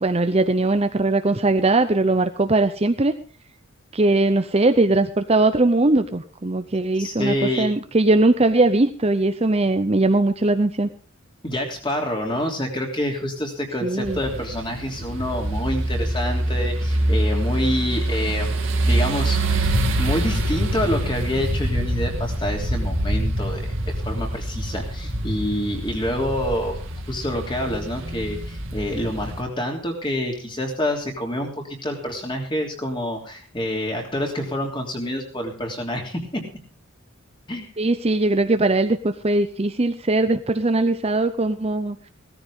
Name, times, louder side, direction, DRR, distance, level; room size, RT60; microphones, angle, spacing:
voice 1, 0.0-3.1 3.9-10.9 13.8-14.2 37.8-42.0, right 2 dB, 30° right, 9 dB, 0.6 m, -20 dB
voice 2, 7.0-7.7 11.4-18.5 18.8-26.8 27.1-36.4 37.5-37.7, left 1 dB, 20° left, 2 dB, 3.2 m, -27 dB
sound 1, 14.0-29.4, right 1 dB, 60° right, 2.3 m, -25 dB
16.5 x 14.0 x 3.7 m, 0.39 s
head